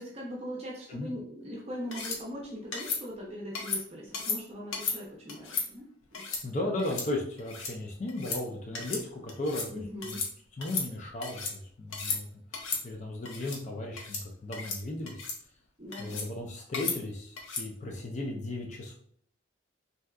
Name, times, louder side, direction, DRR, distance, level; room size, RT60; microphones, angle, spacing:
voice 1, 0.0-6.2 9.7-10.2 15.8-16.2, equal, 30° right, -4 dB, 0.6 m, -40 dB
sound 1, 1.9-2.2 2.7-3.0 3.6-3.8 4.1-4.4 4.7-5.0 5.3-5.7 6.1-6.4 6.8-7.1 7.4-7.7 8.1-8.4 8.7-9.0 9.3-9.7 10.0-10.3 10.6-11.5 11.9-12.2 12.5-12.8 13.3-13.6 14.0-14.2 14.5-14.8 15.1-15.4 15.9-16.3 16.7-17.0 17.4-17.7, left 5 dB, 85° left, 0.7 m, -34 dB
voice 2, 6.4-10.2 10.6-12.3 12.5-15.2 16.0-19.0, left 1 dB, 35° left, 0 dB, 0.4 m, -36 dB
3.4 x 2.7 x 2.3 m, 0.64 s
head